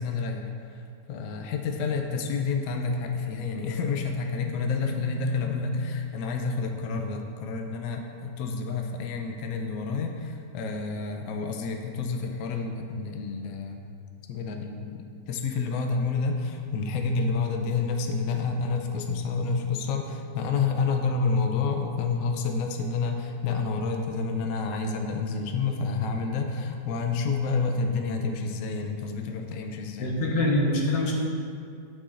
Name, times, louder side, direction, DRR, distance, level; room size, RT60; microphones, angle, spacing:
voice 1, 0.0-13.8 14.3-30.1, left 4 dB, 65° left, 3 dB, 0.9 m, -29 dB
voice 2, 30.0-31.1, left 1 dB, 85° left, -2 dB, 1.8 m, -24 dB
14.0 x 4.9 x 2.5 m, 2.3 s
omnidirectional pair, 1.9 m